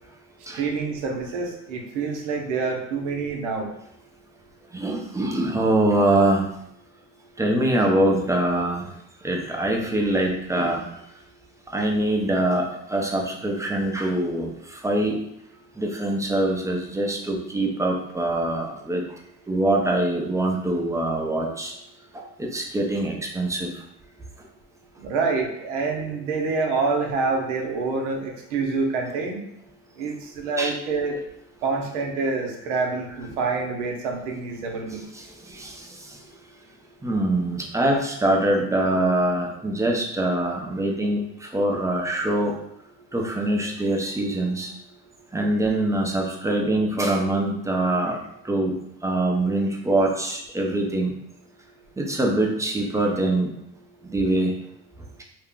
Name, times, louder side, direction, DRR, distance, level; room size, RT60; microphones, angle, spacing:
voice 1, 0.5-3.7 25.0-29.4 30.0-31.2 31.6-35.0, right 4 dB, 90° right, 1 dB, 0.6 m, -27 dB
voice 2, 4.7-6.6 7.4-8.9 9.2-10.8 11.7-15.2 15.8-19.0 19.5-21.7 22.1-23.7 30.6-30.7 35.1-36.2 37.0-42.5 43.1-44.7 45.3-48.2 48.4-48.7 49.0-51.1 52.0-53.5 54.1-54.5, right 1 dB, 10° right, 0 dB, 0.5 m, -24 dB
2.4 x 2.1 x 3.6 m, 0.77 s
supercardioid pair, 85°, 35 cm